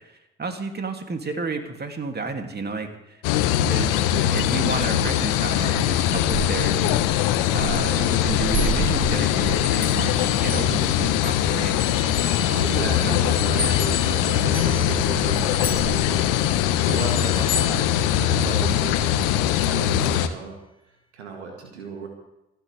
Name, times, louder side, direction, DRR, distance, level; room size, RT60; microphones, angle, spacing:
voice 1, 0.0-3.2 3.6-11.8 12.5-12.8 13.0-13.1 13.5-13.8 16.9-17.1, right 4 dB, 30° right, 5 dB, 2.7 m, -32 dB
sound 1, 3.2-20.3, left 11 dB, 70° left, 1.1 m, -22 dB
sound 2, 3.8-16.0, right 5 dB, 55° right, 2.8 m, -35 dB
sound 3, 8.5-11.4 11.8-18.7, left 5 dB, 15° left, 2.6 m, -35 dB
voice 2, 12.6-20.5 21.1-22.1, right 5 dB, 90° right, 2 dB, 2.0 m, -35 dB
27.5 x 11.5 x 3.5 m, 0.90 s
hypercardioid pair, 50°, 33 cm